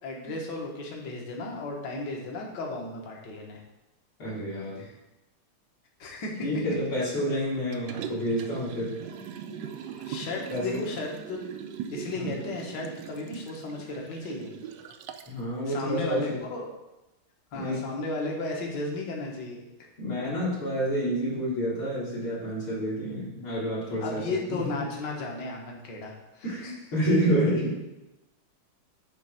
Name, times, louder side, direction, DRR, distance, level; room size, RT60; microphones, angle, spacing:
voice 1, 0.0-3.6 4.8-4.9 6.0-6.4 9.9-11.5 11.9-14.6 15.7-16.7 17.5-19.7 24.0-26.8, left 2 dB, 55° left, -1 dB, 1.9 m, -34 dB
voice 2, 4.2-4.8 6.4-9.0 10.5-10.8 12.2-12.3 15.3-16.4 17.5-17.8 20.0-24.8 26.4-27.8, equal, 75° left, -9 dB, 3.8 m, -29 dB
Liquid, 7.7-15.4 15.8-15.9, right 8 dB, 75° right, 1.0 m, -40 dB
8.9 x 3.3 x 6.6 m, 0.96 s
omnidirectional pair, 2.4 m